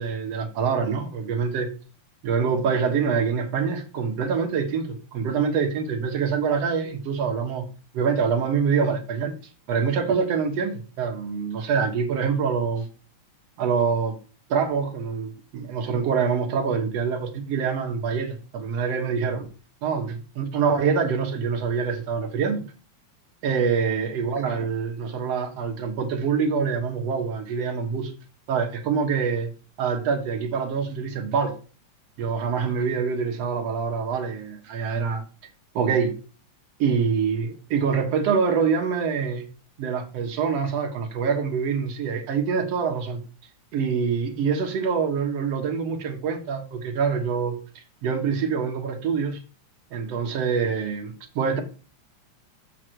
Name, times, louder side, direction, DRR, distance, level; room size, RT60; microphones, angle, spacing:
voice 1, 0.0-1.7 2.2-7.6 7.9-9.3 9.7-12.9 13.6-14.2 14.5-19.5 19.8-22.6 23.4-28.1 28.5-29.5 29.8-31.5 32.2-35.2 35.7-36.1 36.8-39.4 39.8-43.2 43.7-49.4 49.9-51.6, right 6 dB, 60° right, 2.3 m, -25 dB
7.6 x 6.4 x 4.5 m
omnidirectional pair, 3.4 m